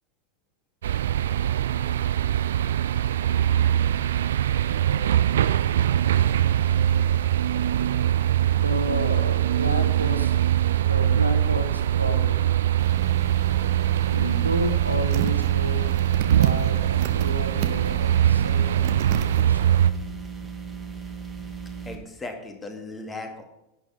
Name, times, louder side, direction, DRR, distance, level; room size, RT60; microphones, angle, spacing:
sound 1, 0.8-19.9, right 11 dB, 60° right, 0.5 m, -22 dB
voice 1, 8.5-12.7 14.1-15.9 16.3-19.7, equal, 85° right, 4 dB, 1.8 m, -32 dB
sound 2, 12.8-22.0, right 5 dB, 10° right, 2.1 m, -37 dB
sound 3, 15.1-15.5 15.9-17.3 17.6-18.1 18.4-18.5 18.8-19.4 20.0-20.1, right 12 dB, 45° right, 1.0 m, -30 dB
voice 2, 21.8-23.5, left 2 dB, 15° left, 3 dB, 2.2 m, -37 dB
11.0 x 9.7 x 5.1 m, 0.92 s
figure-of-eight pair, 90°, 0 cm